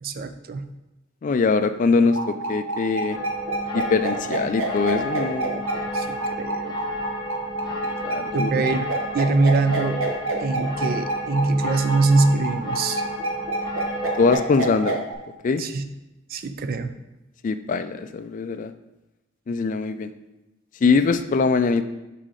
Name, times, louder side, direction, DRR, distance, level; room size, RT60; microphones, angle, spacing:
voice 1, 0.0-0.6 5.9-6.1 6.4-6.8 8.3-10.0 10.4-13.0 15.6-15.8 16.3-16.9, right 3 dB, 45° right, 9 dB, 0.4 m, -23 dB
voice 2, 1.2-2.2 2.5-3.2 3.7-5.6 8.0-8.5 14.2-15.0 15.4-15.6 17.4-18.7 19.5-20.1 20.8-21.8, left 4 dB, 40° left, 10 dB, 0.3 m, -22 dB
sound 1, 2.1-15.1, right 2 dB, 80° right, 1.0 m, -27 dB
sound 2, 3.1-14.3, left 3 dB, 20° left, 0.8 m, -33 dB
6.4 x 4.1 x 3.8 m, 0.99 s
head